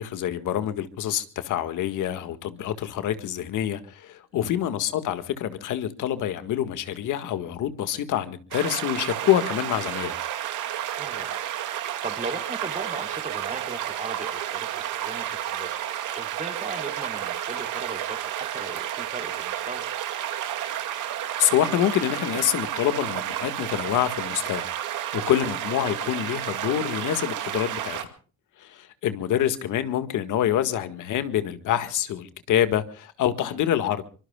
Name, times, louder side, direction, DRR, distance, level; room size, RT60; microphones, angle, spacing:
voice 1, 0.0-10.2 21.4-24.6 25.1-28.0 28.6-34.0, left 11 dB, 85° left, 1.8 m, -26 dB
sound 1, 8.5-28.0, right 11 dB, 90° right, 2.2 m, -31 dB
voice 2, 10.8-19.8 25.4-25.5 33.4-33.6, right 3 dB, 25° right, 3.7 m, -38 dB
25.0 x 24.0 x 2.3 m
cardioid pair, 90°, 30 cm